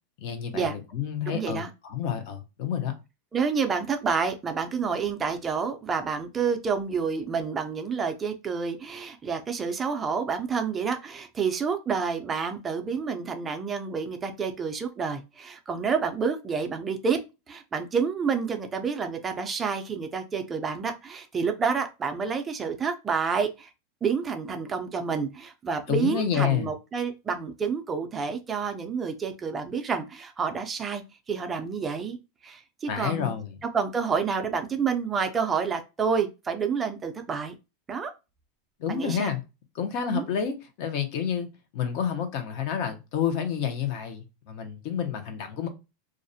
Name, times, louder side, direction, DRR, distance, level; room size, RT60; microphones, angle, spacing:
voice 1, 0.2-2.9 25.9-26.7 32.9-33.6 38.8-39.4 39.7-41.5 41.7-45.7, left 8 dB, 55° left, 0.6 m, -29 dB
voice 2, 1.3-1.7 3.3-17.2 17.5-23.7 24.0-31.0 31.3-32.2 32.4-33.3 33.6-37.5 37.9-38.1 38.9-39.3 40.1-40.2, right 5 dB, 20° right, 0.4 m, -29 dB
2.4 x 2.0 x 2.6 m
supercardioid pair, 145°, 0 cm